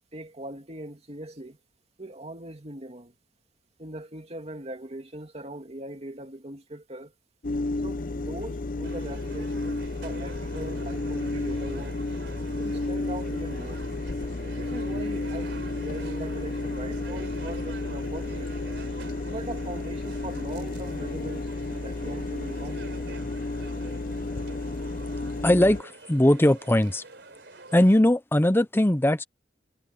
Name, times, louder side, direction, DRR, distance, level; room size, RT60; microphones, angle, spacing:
voice 1, 0.1-1.6 2.0-3.1 3.8-7.1 7.8-12.0 12.5-13.8 14.5-18.6 19.3-23.0, right 1 dB, 35° right, 2.4 m, -40 dB
sound 1, 7.4-25.8, left 2 dB, 50° left, 0.7 m, -32 dB
sound 2, 8.8-28.0, right 3 dB, 65° right, 3.8 m, -46 dB
voice 2, 25.4-27.0 27.7-29.2, left 1 dB, 10° left, 0.7 m, -20 dB
head